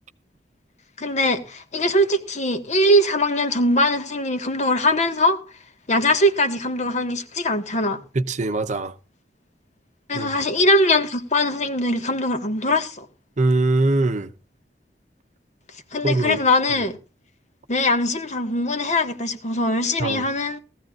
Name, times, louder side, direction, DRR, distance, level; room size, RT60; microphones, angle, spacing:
voice 1, 1.0-5.4 5.9-8.0 10.1-13.0 15.9-17.0 17.7-20.6, left 1 dB, 40° left, 1.6 m, -21 dB
voice 2, 8.1-8.9 10.1-10.3 13.4-14.3 16.0-16.4 20.0-20.2, right 2 dB, 45° right, 0.8 m, -22 dB
18.5 x 14.5 x 2.4 m
head